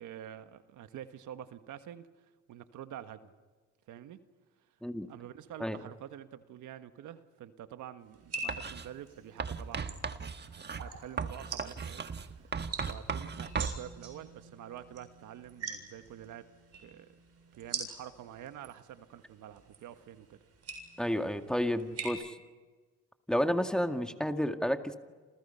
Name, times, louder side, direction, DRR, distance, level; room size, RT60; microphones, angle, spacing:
voice 1, 0.0-2.1 2.5-3.3 3.9-4.2 5.1-16.5 16.8-17.1 17.6-20.4, right 10 dB, 80° right, 9 dB, 1.5 m, -47 dB
sound 1, 8.1-22.1, right 4 dB, 55° right, 7.3 m, -45 dB
Writing, 8.5-8.9 9.4-13.8, right 5 dB, 35° right, 1.5 m, -37 dB
voice 2, 21.0-22.4 23.3-25.0, equal, ahead, 6 dB, 2.1 m, -31 dB
29.5 x 28.5 x 5.7 m, 1.4 s
cardioid pair, 90°, 30 cm